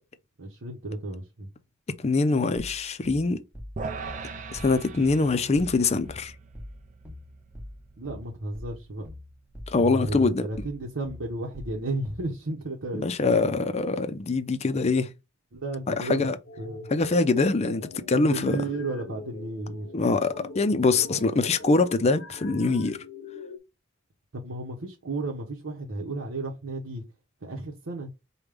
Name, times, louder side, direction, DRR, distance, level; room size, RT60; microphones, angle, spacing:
voice 1, 0.4-1.5 7.9-9.1 9.8-13.7 15.5-16.3 16.6-16.9 18.1-19.9 24.3-27.0 27.4-28.1, right 2 dB, 80° right, 0.9 m, -33 dB
voice 2, 2.0-3.4 4.5-6.3 9.7-10.5 12.9-15.1 15.9-16.4 16.9-18.6 19.9-23.0, left 3 dB, 35° left, 0.5 m, -24 dB
sound 1, 2.6-12.3, left 1 dB, 5° right, 0.8 m, -43 dB
sound 2, 3.8-10.1, right 4 dB, 40° right, 0.5 m, -42 dB
sound 3, 16.4-23.6, left 2 dB, 80° left, 0.7 m, -42 dB
5.1 x 2.3 x 3.3 m
head